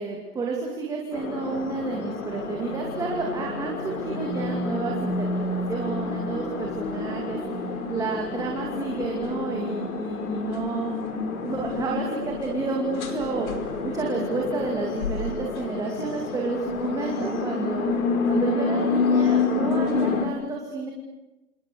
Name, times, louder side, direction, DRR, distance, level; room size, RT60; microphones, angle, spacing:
voice 1, 0.0-17.9 18.3-20.9, right 4 dB, 5° right, -1 dB, 2.4 m, -31 dB
sound 1, 1.1-20.3, left 4 dB, 60° left, 5.1 m, -28 dB
28.5 x 28.5 x 6.7 m, 1.0 s
hypercardioid pair, 160°, 47 cm